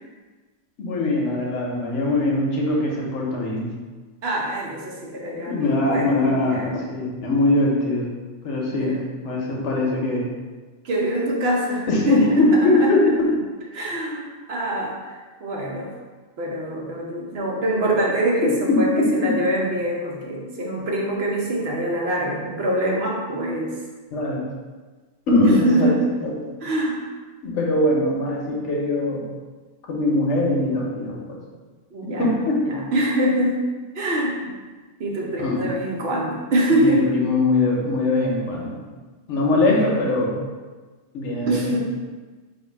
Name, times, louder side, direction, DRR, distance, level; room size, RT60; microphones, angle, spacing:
voice 1, 0.8-3.7 5.5-8.1 8.4-8.9 9.2-10.3 11.9-13.3 18.7-19.1 24.1-24.5 25.3-25.9 26.2-26.3 27.4-29.3 29.9-31.4 32.2-32.6 35.4-35.7 36.7-38.8 39.3-40.4 41.1-41.8, left 2 dB, 85° left, -2 dB, 1.2 m, -21 dB
voice 2, 4.2-6.8 8.7-9.0 10.8-12.9 13.7-15.0 15.4-15.9 16.4-23.8 25.4-26.0 26.6-27.0 31.9-32.3 32.6-33.6 33.9-34.4 35.0-37.1 39.5-39.9 41.5-41.8, right 1 dB, 65° right, -2 dB, 0.9 m, -24 dB
3.5 x 2.4 x 4.5 m, 1.3 s
omnidirectional pair, 1.2 m